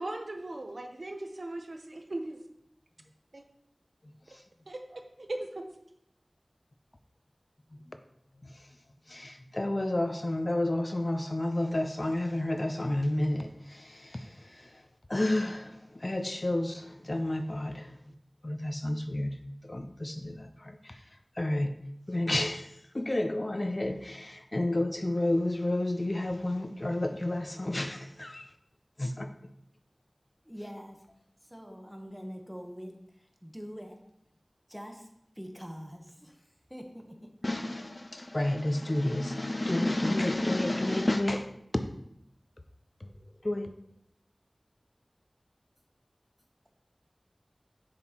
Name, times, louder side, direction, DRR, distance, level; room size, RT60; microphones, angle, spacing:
voice 1, 0.0-2.4 3.3-3.4 4.7-5.6, right 2 dB, 75° right, 0.8 m, -38 dB
voice 2, 9.1-14.7 15.1-17.9 18.4-19.4 19.6-21.0 21.4-21.8 22.1-28.5 29.0-29.3 37.4-41.9 43.0-43.1 43.4-43.7, left 1 dB, 45° left, 0.5 m, -30 dB
voice 3, 30.4-31.0 31.4-34.0 34.7-35.1 35.3-37.4 43.0-43.5, equal, 5° right, 1.0 m, -45 dB
7.5 x 6.0 x 3.0 m
wide cardioid pair, 45°, 0 cm